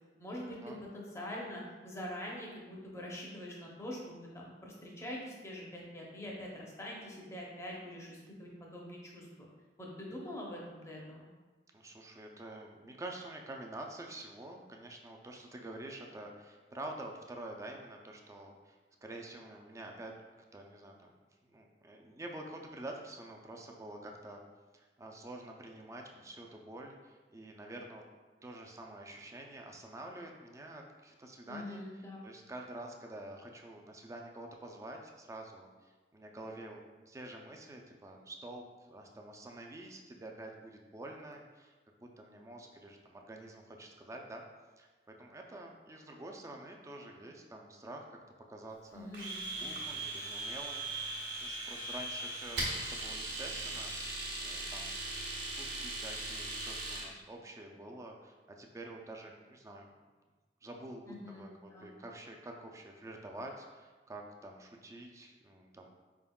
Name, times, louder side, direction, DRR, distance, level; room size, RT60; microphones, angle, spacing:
voice 1, 0.2-9.5 9.8-11.3 31.5-32.2 48.9-49.8 61.1-61.9, left 1 dB, 15° left, -3 dB, 0.6 m, -44 dB
voice 2, 11.7-20.1 20.5-24.4 24.7-28.0 28.4-41.7 42.0-44.4 44.8-44.9 45.2-48.2 48.5-49.1 49.6-51.1 51.3-59.9 60.6-66.0, right 1 dB, 15° right, 1 dB, 0.4 m, -48 dB
Domestic sounds home sounds, 49.1-57.1, right 2 dB, 70° right, 0.9 m, -39 dB
4.5 x 3.5 x 2.3 m, 1.3 s
head